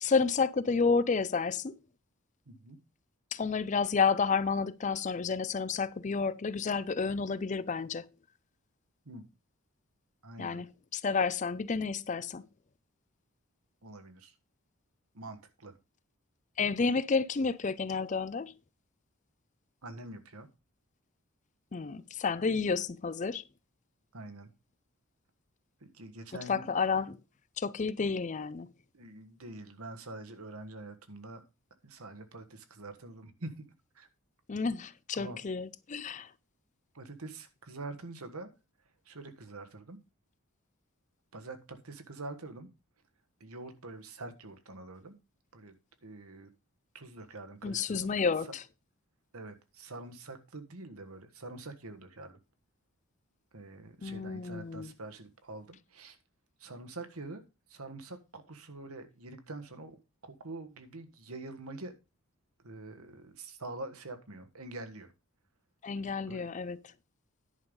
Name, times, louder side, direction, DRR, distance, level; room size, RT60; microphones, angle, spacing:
voice 1, 0.0-1.7 3.3-8.1 10.4-10.7 10.9-12.4 16.6-18.5 21.7-23.4 26.5-27.2 27.6-28.7 34.5-36.3 47.6-48.6 54.0-54.9 65.8-66.8, left 5 dB, 35° left, 0.4 m, -30 dB
voice 2, 2.4-2.8 9.0-9.3 10.2-10.6 13.8-14.3 15.1-15.7 19.8-20.5 24.1-24.5 25.8-27.0 28.9-31.4 31.8-33.6 33.9-34.1 35.1-35.4 36.9-38.5 39.0-40.0 41.3-42.7 43.4-45.2 45.5-45.7 46.0-46.5 46.9-48.1 49.3-52.4 53.5-56.2 56.6-57.4 57.7-60.0 60.2-61.9 62.6-65.1 66.3-66.5, right 2 dB, 80° right, 1.5 m, -45 dB
10.5 x 5.5 x 5.3 m
head